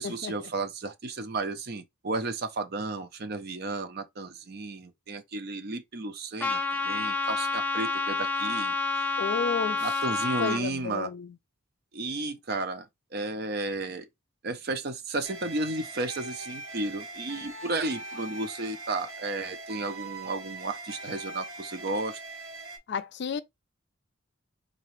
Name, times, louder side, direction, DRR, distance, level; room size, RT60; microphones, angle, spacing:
voice 1, 0.0-9.1 9.8-11.1 11.9-12.9 13.1-14.0 14.4-22.2, right 2 dB, 50° right, 0.6 m, -33 dB
Trumpet, 6.4-10.6, left 4 dB, 10° left, 0.6 m, -29 dB
voice 2, 9.2-9.9 10.4-11.3 22.9-23.4, left 5 dB, 55° left, 0.4 m, -32 dB
sound 1, 15.2-22.8, right 3 dB, 75° right, 1.3 m, -41 dB
4.0 x 2.9 x 3.1 m
head